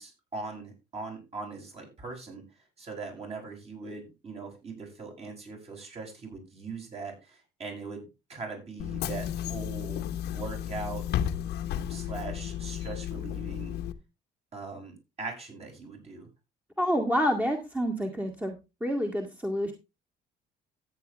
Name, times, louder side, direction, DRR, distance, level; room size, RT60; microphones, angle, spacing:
voice 1, 0.0-2.4 2.8-8.0 8.3-11.0 11.9-13.8 14.5-16.3, right 4 dB, 35° right, 1 dB, 7.4 m, -40 dB
Bus / Engine, 8.8-13.9, left 10 dB, 75° left, 1.1 m, -33 dB
voice 2, 16.8-18.6 18.8-19.7, equal, 10° right, 2 dB, 2.1 m, -28 dB
13.5 x 9.5 x 3.4 m, 0.26 s
cardioid pair, 110°, 17 cm